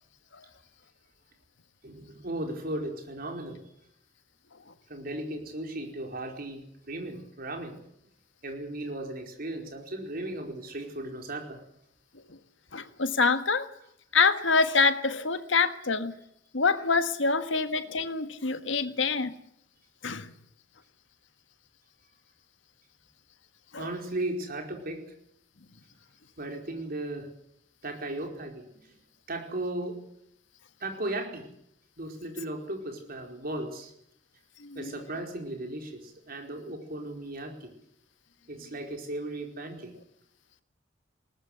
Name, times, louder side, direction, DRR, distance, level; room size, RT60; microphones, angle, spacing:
voice 1, 1.8-3.6 4.9-7.7 8.4-11.6 23.8-25.0 26.4-27.3 27.8-28.9 29.3-30.0 30.8-31.5 32.0-33.9 34.7-37.7 38.5-39.9, right 1 dB, 50° right, 3 dB, 4.7 m, -36 dB
voice 2, 12.7-13.7 14.1-16.1 16.5-19.4 20.0-20.3 23.7-23.9 34.6-34.9, left 4 dB, 80° left, 10 dB, 1.6 m, -26 dB
21.0 x 19.0 x 8.2 m, 0.73 s
head